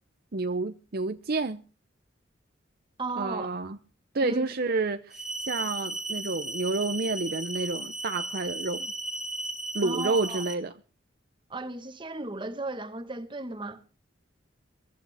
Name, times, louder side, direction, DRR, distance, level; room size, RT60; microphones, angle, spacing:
voice 1, 0.3-1.6 3.2-3.8 4.1-8.9 9.7-10.7, right 3 dB, 55° right, 0.7 m, -29 dB
voice 2, 3.0-3.5 4.2-4.5 9.8-10.4 11.5-13.8, right 2 dB, 25° right, 1.4 m, -35 dB
sound 1, 5.1-10.5, right 2 dB, ahead, 1.0 m, -35 dB
23.0 x 13.5 x 3.5 m
head